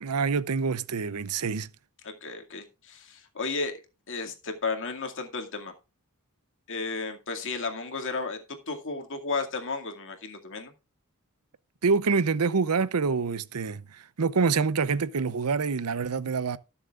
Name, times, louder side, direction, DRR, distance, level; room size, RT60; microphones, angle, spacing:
voice 1, 0.0-1.7 11.8-13.8 14.2-16.6, right 5 dB, 90° right, 0.7 m, -26 dB
voice 2, 2.0-3.7 4.1-5.7 6.7-10.7, left 4 dB, 60° left, 2.2 m, -33 dB
19.5 x 7.1 x 2.5 m
head